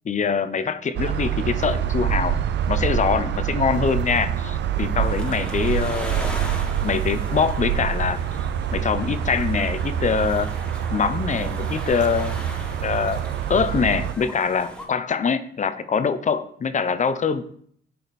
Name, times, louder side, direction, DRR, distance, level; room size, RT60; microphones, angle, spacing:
voice 1, 0.0-2.4 2.7-6.3 6.8-8.2 8.7-10.5 10.9-12.4 12.8-13.2 13.5-17.6, left 6 dB, 40° left, 13 dB, 0.7 m, -24 dB
sound 1, 1.0-14.1, right 9 dB, 65° right, 0.7 m, -26 dB
sound 2, 5.0-14.9, equal, 5° left, 1.8 m, -39 dB
10.0 x 5.1 x 4.2 m, 0.62 s
cardioid pair, 90°, 20 cm